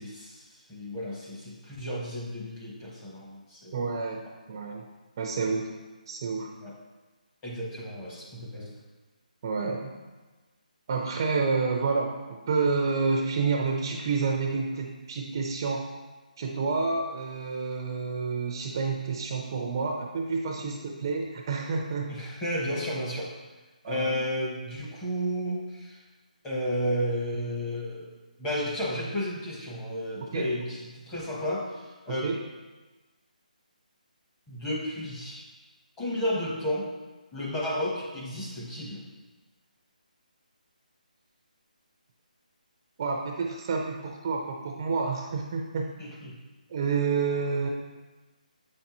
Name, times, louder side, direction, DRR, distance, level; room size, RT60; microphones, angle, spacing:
voice 1, 0.0-3.8 6.6-6.7 7.4-8.7 20.6-20.7 22.1-23.3 23.8-26.0 26.4-28.1 28.4-31.7 32.1-32.3 34.5-35.4 36.0-36.9 37.3-39.0 46.0-46.4, equal, 10° left, -5 dB, 1.0 m, -32 dB
voice 2, 3.7-4.2 4.5-4.8 5.2-5.7 6.1-6.5 9.4-9.9 10.9-15.9 16.4-22.1 23.8-24.1 30.3-30.5 32.1-32.4 43.0-45.9 46.7-47.7, right 4 dB, 30° right, 1 dB, 0.5 m, -29 dB
7.9 x 5.3 x 3.0 m, 1.2 s
hypercardioid pair, 165°, 5 cm